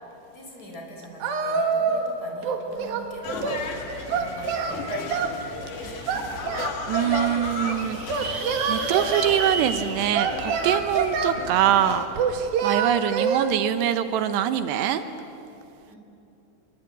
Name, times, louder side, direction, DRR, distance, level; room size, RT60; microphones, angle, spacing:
voice 1, 0.3-3.6 4.1-5.3 5.8-6.3 15.9-16.0, left 1 dB, 20° left, 1 dB, 5.2 m, -42 dB
Singing, 1.2-2.1 2.4-3.6 4.1-5.4 6.1-7.4 8.1-9.3 10.1-11.4 12.2-13.5, right 6 dB, 65° right, 3.3 m, -26 dB
sound 1, 2.8-2.9 3.1-5.2 5.8-5.9 6.3-6.4 6.6-6.7 7.2-11.8, right 4 dB, 40° right, 2.1 m, -35 dB
sound 2, 3.2-12.1, left 5 dB, 55° left, 3.1 m, -35 dB
voice 2, 6.9-12.1 12.6-15.0, right 11 dB, 80° right, 10 dB, 3.0 m, -24 dB
27.5 x 23.0 x 8.9 m, 2.8 s
omnidirectional pair, 4.9 m